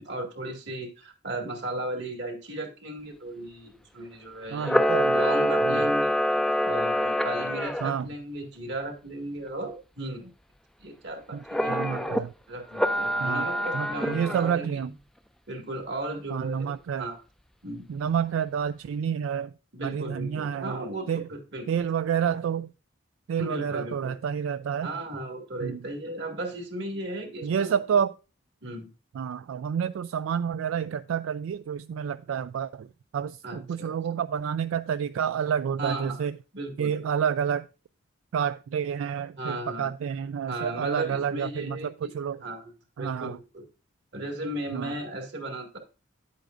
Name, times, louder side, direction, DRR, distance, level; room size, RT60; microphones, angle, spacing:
voice 1, 0.0-4.8 5.1-6.2 6.6-10.3 10.8-12.2 12.5-14.8 15.5-17.2 17.6-17.8 19.7-21.7 23.4-24.2 24.8-27.8 28.6-28.9 33.4-33.9 35.8-36.2 36.5-36.9 39.4-39.9 40.5-42.1 42.4-42.7 43.0-43.6 44.1-45.8, right 1 dB, 60° right, 2.1 m, -36 dB
voice 2, 4.5-5.2 5.6-5.9 7.8-8.1 11.3-12.3 13.2-13.5 13.7-14.9 16.3-17.1 17.9-19.5 19.8-21.3 21.7-22.7 23.3-24.9 25.6-25.8 27.4-28.2 29.1-32.9 33.1-36.4 36.8-37.7 38.3-42.4 43.0-43.4 44.7-44.9, right 7 dB, 85° right, 0.3 m, -29 dB
Camera, 4.6-7.9 11.5-12.2 12.7-14.6, equal, ahead, 0.3 m, -25 dB
10.0 x 8.2 x 2.6 m
head